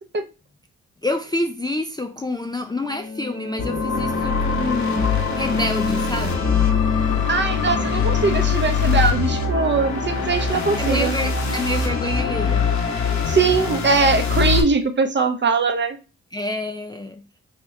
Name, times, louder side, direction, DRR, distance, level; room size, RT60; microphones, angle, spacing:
voice 1, 1.0-6.5 10.8-12.8 16.3-17.2, left 2 dB, 15° left, 0.4 m, -27 dB
sound 1, 2.6-11.2, left 4 dB, 35° left, 1.0 m, -30 dB
sound 2, 3.6-14.6, left 5 dB, 60° left, 1.1 m, -23 dB
voice 2, 7.3-11.2 13.3-16.0, right 4 dB, 35° right, 0.7 m, -21 dB
3.4 x 2.9 x 3.3 m
supercardioid pair, 55°, 32 cm